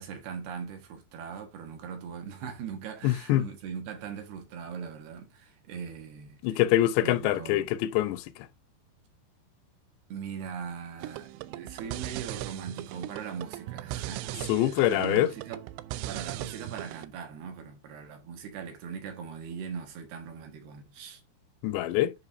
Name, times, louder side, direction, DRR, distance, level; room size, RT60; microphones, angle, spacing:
voice 1, 0.0-6.6 7.0-7.7 10.1-15.6 16.1-21.2, right 7 dB, 70° right, 3.4 m, -40 dB
voice 2, 3.0-3.4 6.4-8.2 14.5-15.3 21.6-22.1, left 14 dB, 85° left, 2.8 m, -24 dB
sound 1, 11.0-17.1, right 15 dB, 85° right, 2.8 m, -38 dB
10.5 x 5.5 x 2.7 m
omnidirectional pair, 5.0 m